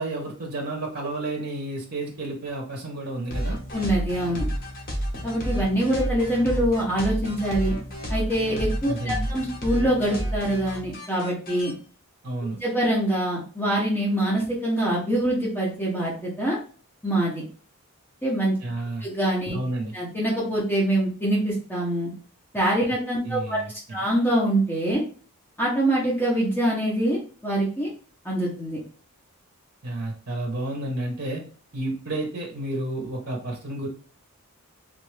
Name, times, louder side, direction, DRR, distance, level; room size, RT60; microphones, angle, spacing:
voice 1, 0.0-3.6 8.9-9.3 12.2-12.6 18.6-19.1 19.5-19.9 23.2-24.0 29.8-31.4 31.7-33.9, right 2 dB, 45° right, 0 dB, 0.9 m, -31 dB
sound 1, 3.3-11.7, equal, 40° left, 1.0 m, -30 dB
voice 2, 3.7-4.5 5.2-7.7 8.1-11.7 12.6-16.6 17.0-17.4 18.2-18.5 19.0-19.5 19.9-22.1 22.5-23.6 23.9-25.0 25.6-27.9 28.2-28.8, right 1 dB, 10° left, -6 dB, 1.0 m, -24 dB
3.2 x 2.6 x 3.2 m, 0.41 s
head